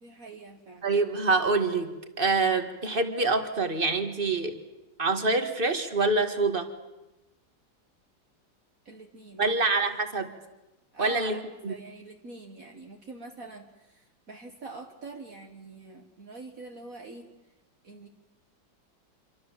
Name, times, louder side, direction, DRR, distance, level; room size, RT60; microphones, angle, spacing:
voice 1, 0.0-0.9 8.9-9.5 10.9-17.3 17.8-18.1, right 3 dB, 50° right, 3 dB, 2.0 m, -45 dB
voice 2, 0.8-1.9 2.2-4.6 5.0-6.7 9.4-10.3 11.0-11.4 11.6-11.7, right 3 dB, 30° right, 7 dB, 2.1 m, -25 dB
26.5 x 25.0 x 7.5 m, 0.99 s
omnidirectional pair, 1.9 m